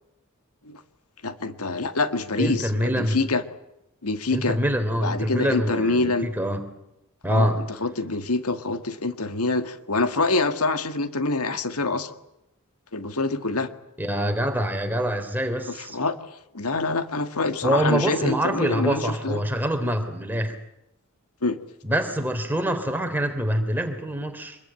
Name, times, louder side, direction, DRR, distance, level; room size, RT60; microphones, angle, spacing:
voice 1, 1.2-3.4 4.0-4.6 5.0-6.3 7.3-7.5 7.8-12.1 12.9-13.7 15.8-16.2 16.5-19.4 21.4-21.6, left 3 dB, 85° left, 9 dB, 1.7 m, -25 dB
voice 2, 2.4-3.2 4.3-6.6 7.2-7.6 14.0-16.0 17.6-20.5 21.8-24.6, equal, 10° right, 5 dB, 3.2 m, -25 dB
25.5 x 21.5 x 9.0 m, 0.86 s
head